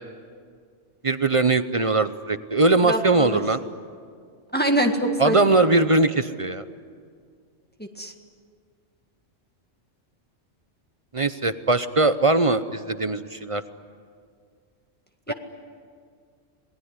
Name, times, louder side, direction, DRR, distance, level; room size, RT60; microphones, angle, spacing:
voice 1, 1.0-3.6 5.2-6.6 11.1-13.6 15.3-15.4, right 3 dB, 35° right, 12 dB, 0.6 m, -21 dB
voice 2, 2.8-3.4 4.5-5.7 7.8-8.1 15.3-15.4, right 1 dB, 10° left, 3 dB, 1.7 m, -25 dB
27.0 x 19.5 x 9.7 m, 2.1 s
omnidirectional pair, 1.3 m